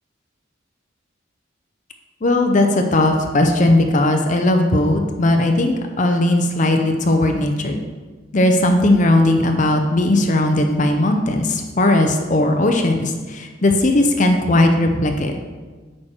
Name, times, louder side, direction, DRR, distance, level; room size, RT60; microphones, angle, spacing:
voice 1, 2.2-7.8 8.3-15.3, left 1 dB, 40° left, 4 dB, 0.6 m, -17 dB
8.9 x 6.3 x 4.4 m, 1.4 s
head